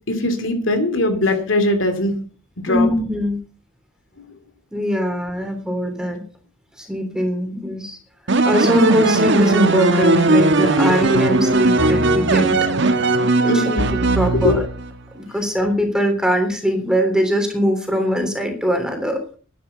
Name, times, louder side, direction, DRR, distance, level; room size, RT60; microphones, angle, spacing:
voice 1, 0.1-2.1 2.6-2.9 13.5-13.9 14.3-14.5, left 1 dB, 65° left, 7 dB, 3.0 m, -20 dB
voice 2, 2.7-3.4 4.7-6.2 6.8-8.0 8.4-12.6 13.4-13.7 14.2-14.6 15.1-19.4, equal, 5° right, 5 dB, 3.3 m, -21 dB
sound 1, 8.3-14.9, right 2 dB, 60° right, 1.4 m, -17 dB
11.0 x 11.0 x 6.8 m, 0.40 s
head